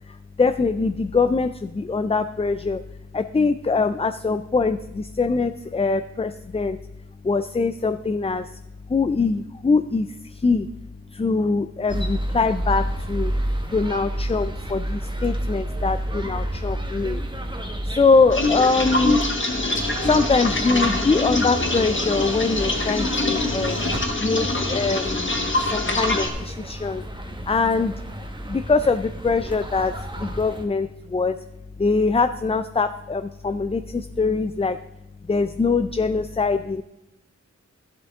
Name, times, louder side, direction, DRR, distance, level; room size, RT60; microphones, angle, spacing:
voice 1, 0.1-2.8 3.1-6.8 7.2-8.6 8.9-10.7 11.1-13.3 13.7-17.2 17.8-19.2 20.0-23.8 24.2-27.0 27.5-27.9 28.5-31.4 31.8-34.8 35.3-36.8, left 4 dB, 20° left, 11 dB, 0.3 m, -23 dB
sound 1, 11.9-30.7, right 1 dB, 15° right, 1.2 m, -30 dB
sound 2, 18.3-26.3, left 2 dB, 40° left, 1.5 m, -24 dB
12.5 x 11.5 x 3.6 m, 0.92 s
wide cardioid pair, 75°, 29 cm